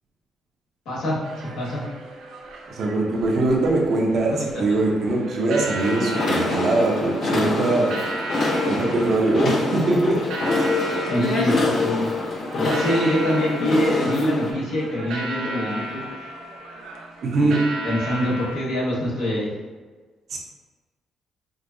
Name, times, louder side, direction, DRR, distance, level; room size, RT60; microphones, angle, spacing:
voice 1, 0.8-1.8 4.3-4.8 11.0-12.1 12.6-16.0 17.4-19.5, equal, 85° left, -7 dB, 1.4 m, -25 dB
sound 1, 1.2-18.6, right 2 dB, 80° right, 0.5 m, -35 dB
voice 2, 2.7-7.9 8.6-10.2 17.2-17.6 20.3-20.4, right 2 dB, 60° right, -1 dB, 0.8 m, -22 dB
sound 2, 5.8-14.5, left 2 dB, 60° left, 0.7 m, -25 dB
5.1 x 2.2 x 2.6 m, 1.4 s
cardioid pair, 90°, 0 cm